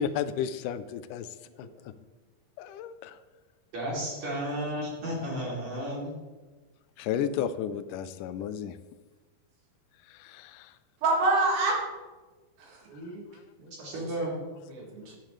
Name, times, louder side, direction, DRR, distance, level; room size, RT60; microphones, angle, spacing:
voice 1, 0.0-1.7 2.6-3.2 7.0-8.8 10.0-10.8 13.3-13.5, left 8 dB, 80° left, 11 dB, 1.9 m, -33 dB
voice 2, 3.7-6.2 13.8-14.4, equal, 55° right, -6 dB, 4.4 m, -33 dB
voice 3, 11.0-11.8 12.6-13.2 13.6-13.9 14.3-14.4 14.7-15.2, right 2 dB, 75° right, -1 dB, 3.8 m, -28 dB
12.5 x 10.0 x 3.2 m, 1.3 s
omnidirectional pair, 4.2 m